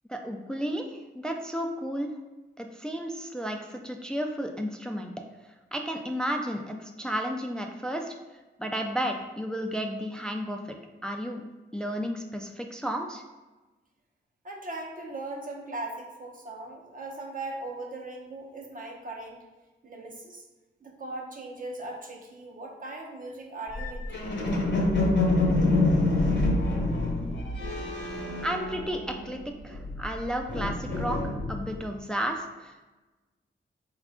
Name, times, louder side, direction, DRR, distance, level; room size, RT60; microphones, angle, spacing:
voice 1, 0.1-2.1 2.6-5.1 5.7-8.1 8.6-10.7 11.0-11.4 11.7-13.2 28.4-29.4 29.6-32.8, equal, 5° left, 3 dB, 0.3 m, -32 dB
voice 2, 14.4-19.4 19.8-20.4 20.8-24.3 27.6-27.7, right 2 dB, 45° right, 0 dB, 0.8 m, -39 dB
sound 1, 23.7-29.3 29.6-31.9, left 2 dB, 70° left, 0.9 m, -27 dB
4.0 x 2.4 x 3.6 m, 1.2 s
wide cardioid pair, 85°, 19 cm